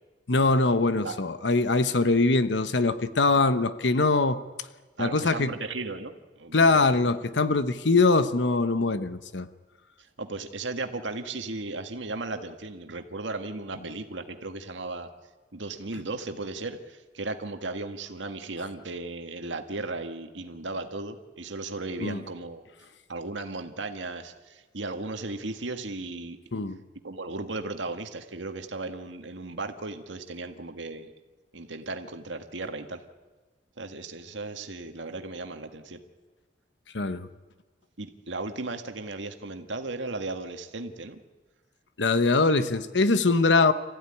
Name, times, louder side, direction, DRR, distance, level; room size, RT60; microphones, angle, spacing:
voice 1, 0.3-4.4 5.0-5.5 6.5-9.5 22.0-22.2 26.5-26.8 36.9-37.3 42.0-43.7, left 3 dB, 70° left, 12 dB, 1.0 m, -22 dB
voice 2, 5.0-7.0 10.2-15.1 15.5-22.6 23.1-26.4 27.0-31.1 31.5-33.0 33.8-36.0 38.0-41.2, right 3 dB, 85° right, 6 dB, 1.8 m, -36 dB
26.5 x 15.0 x 10.0 m, 1.3 s
head